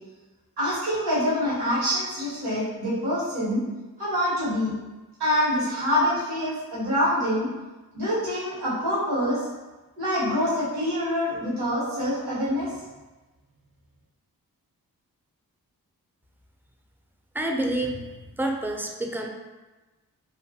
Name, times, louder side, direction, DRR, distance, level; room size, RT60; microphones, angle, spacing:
voice 1, 0.6-3.6 4.0-4.7 5.2-7.5 7.9-9.5 10.0-12.7, equal, 80° right, -10 dB, 1.1 m, -25 dB
voice 2, 17.3-18.1 18.4-19.3, right 1 dB, 5° right, 2 dB, 0.3 m, -28 dB
2.6 x 2.3 x 2.6 m, 1.2 s
cardioid pair, 40°, 38 cm